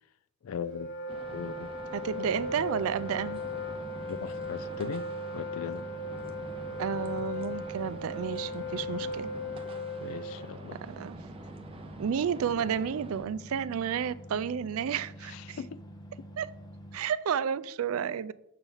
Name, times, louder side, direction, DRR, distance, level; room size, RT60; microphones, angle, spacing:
voice 1, 0.4-1.0 1.3-1.7 4.1-5.9 10.0-10.8 15.3-15.8, left 7 dB, 80° left, 0.4 m, -39 dB
Wind instrument woodwind instrument, 0.6-10.5, left 2 dB, 50° left, 1.3 m, -37 dB
sound 1, 1.1-13.2, right 2 dB, 25° right, 0.6 m, -47 dB
voice 2, 1.9-3.4 6.8-9.3 10.8-11.2 12.0-15.6 16.4-16.5 16.9-18.3, right 7 dB, 80° right, 0.4 m, -31 dB
sound 2, 2.2-17.0, equal, 20° left, 0.6 m, -47 dB
6.7 x 4.5 x 5.5 m
head